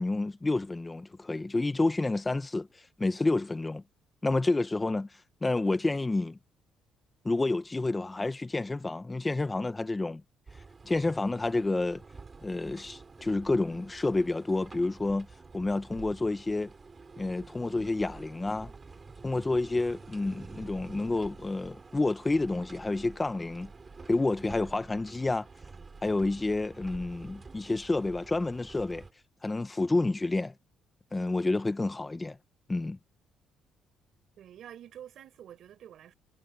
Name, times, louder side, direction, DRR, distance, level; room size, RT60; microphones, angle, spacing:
voice 1, 0.0-3.8 4.2-5.1 5.4-6.4 7.2-10.2 10.8-12.0 12.4-15.3 15.5-16.7 17.2-18.7 19.2-23.7 24.1-25.5 26.0-29.0 29.4-30.5 31.1-32.4 32.7-33.0, left 2 dB, 15° left, 0.9 m, -29 dB
sound 1, 10.5-29.1, right 4 dB, 25° right, 7.5 m, -49 dB
voice 2, 34.4-36.1, right 10 dB, 65° right, 4.8 m, -48 dB
cardioid pair, 115°, 0 cm